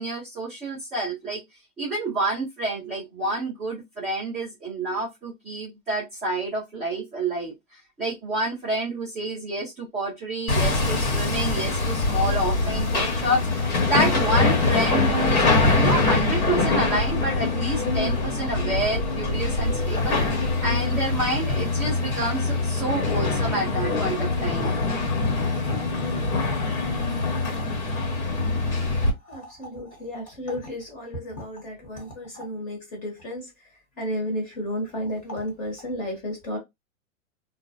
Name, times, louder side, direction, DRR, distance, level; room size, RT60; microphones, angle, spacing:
voice 1, 0.0-1.4 1.8-24.8, right 2 dB, ahead, 0.4 m, -29 dB
Hammer, 10.5-29.1, left 3 dB, 80° left, 1.2 m, -24 dB
voice 2, 29.2-33.5 34.0-36.6, equal, 20° left, 0.9 m, -32 dB
2.3 x 2.1 x 2.5 m
hypercardioid pair, 145°, 42 cm